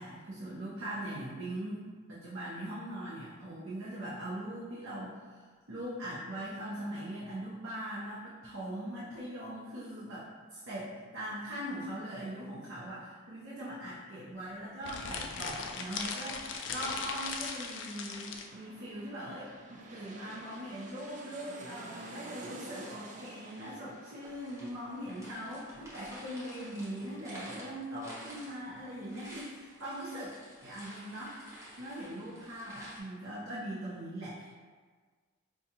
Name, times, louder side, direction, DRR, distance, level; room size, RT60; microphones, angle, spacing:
voice 1, 0.0-31.5 31.8-34.5, right 1 dB, 75° right, -8 dB, 0.7 m, -41 dB
sound 1, 14.8-18.5, left 5 dB, 65° left, 0.3 m, -38 dB
sound 2, 17.6-28.7 29.0-29.1, right 2 dB, 35° right, 0.3 m, -51 dB
sound 3, 24.2-33.0, right 1 dB, 15° right, 0.7 m, -51 dB
4.7 x 2.4 x 2.8 m, 1.5 s
head